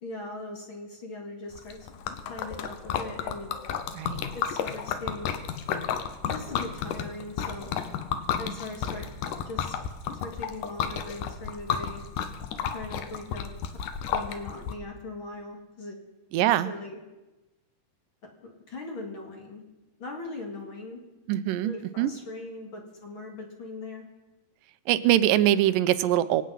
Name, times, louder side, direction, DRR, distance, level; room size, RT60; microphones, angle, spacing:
voice 1, 0.0-1.8 2.3-3.6 4.3-5.4 6.3-7.8 8.4-9.1 9.5-9.8 10.1-12.0 12.7-13.5 14.1-16.0 16.4-17.0 18.4-19.6 20.0-21.0 21.6-24.1, left 2 dB, 45° left, 1 dB, 2.2 m, -40 dB
Liquid, 1.6-14.7, left 8 dB, 75° left, 2.5 m, -32 dB
voice 2, 16.3-16.7 21.3-21.7 22.0-22.1 24.9-26.4, right 13 dB, 90° right, 14 dB, 2.3 m, -23 dB
25.5 x 8.6 x 5.5 m, 1.1 s
omnidirectional pair, 3.9 m